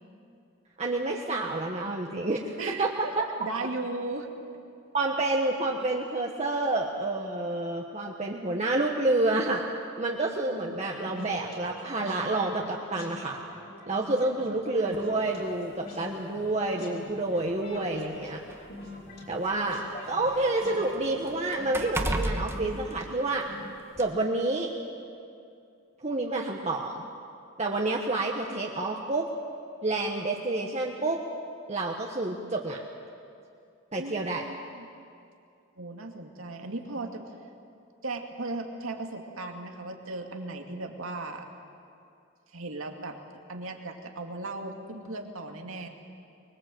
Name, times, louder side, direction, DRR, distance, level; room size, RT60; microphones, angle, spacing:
voice 1, 0.8-2.5 2.8-3.2 4.9-9.6 10.0-13.4 13.9-18.4 19.3-23.5 24.0-24.7 26.0-27.1 27.6-29.3 29.8-31.2 31.7-32.8 33.9-34.4, right 2 dB, 35° right, 0 dB, 1.3 m, -29 dB
voice 2, 2.6-3.1 3.4-4.3 20.1-20.2 34.0-34.9 35.8-37.2 38.0-41.5 42.5-43.2 43.5-45.9, right 2 dB, 90° right, 3 dB, 2.3 m, -37 dB
sound 1, 10.8-23.5, left 2 dB, 50° left, 4.5 m, -44 dB
sound 2, 14.9-15.1 16.1-16.2 16.7-16.8 17.8-19.7 20.1-23.6 24.0-24.1, right 1 dB, 10° right, 1.2 m, -34 dB
24.5 x 21.5 x 7.8 m, 2.5 s
head